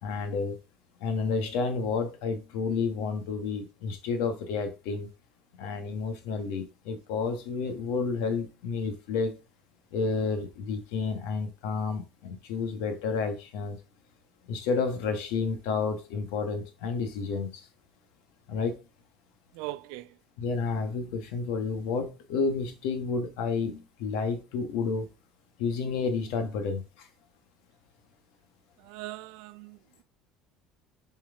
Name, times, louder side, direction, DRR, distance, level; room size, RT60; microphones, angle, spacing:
voice 1, 0.0-0.6 1.0-5.1 5.6-9.4 9.9-13.8 14.5-17.7 18.5-18.8 20.4-25.1 25.6-27.1, left 4 dB, 75° left, 1.4 m, -30 dB
voice 2, 19.6-20.1 28.9-29.8, right 17 dB, 75° right, 0.5 m, -39 dB
7.3 x 4.5 x 3.6 m
cardioid pair, 175°, 0 cm